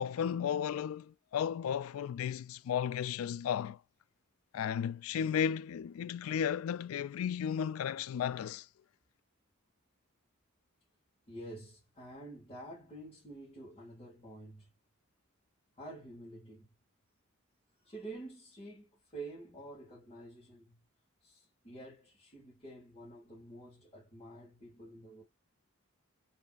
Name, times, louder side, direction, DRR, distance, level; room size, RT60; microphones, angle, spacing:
voice 1, 0.0-3.8 4.5-8.7, left 8 dB, 80° left, 0.3 m, -34 dB
voice 2, 11.3-14.7 15.8-16.7 17.8-20.8 21.2-25.2, right 2 dB, 30° left, 1.8 m, -49 dB
4.1 x 3.3 x 2.3 m
head